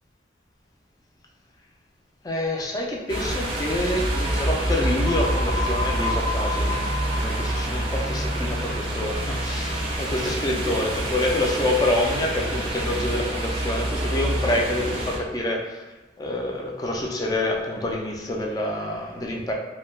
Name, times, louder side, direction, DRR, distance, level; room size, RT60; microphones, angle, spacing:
voice 1, 2.2-15.8 16.2-19.5, left 1 dB, 20° left, 0 dB, 0.3 m, -27 dB
sound 1, 3.1-15.2, right 1 dB, 30° right, 0.5 m, -27 dB
sound 2, 5.1-8.9, left 2 dB, 90° left, 0.5 m, -32 dB
2.7 x 2.2 x 3.0 m, 1.2 s
head